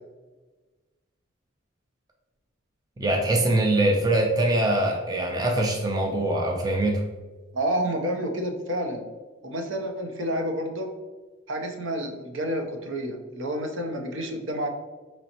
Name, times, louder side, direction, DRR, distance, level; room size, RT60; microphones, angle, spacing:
voice 1, 3.0-7.0, right 1 dB, 20° right, 0 dB, 0.4 m, -23 dB
voice 2, 7.5-9.0 9.4-10.9 11.5-14.7, right 1 dB, 70° right, 3 dB, 0.7 m, -29 dB
5.1 x 3.1 x 2.8 m, 1.3 s
head